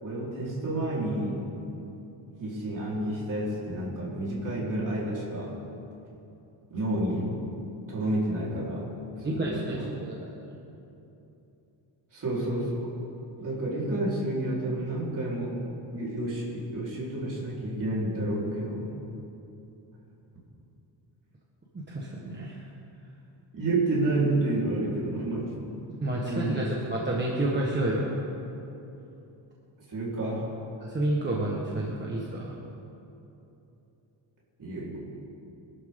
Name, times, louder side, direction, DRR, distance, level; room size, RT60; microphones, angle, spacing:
voice 1, 0.0-1.5 2.4-5.6 6.7-7.3 7.9-8.9 9.2-9.9 12.1-12.9 13.4-15.6 15.9-18.9 23.5-25.5 26.2-26.7 29.9-30.5 34.6-35.0, right 1 dB, 40° right, -6 dB, 4.2 m, -30 dB
voice 2, 9.2-9.7 10.0-10.3 21.7-22.6 25.9-28.1 30.8-32.6, right 1 dB, 20° right, -3 dB, 1.4 m, -30 dB
24.0 x 12.0 x 3.8 m, 2.9 s
wide cardioid pair, 175°, 47 cm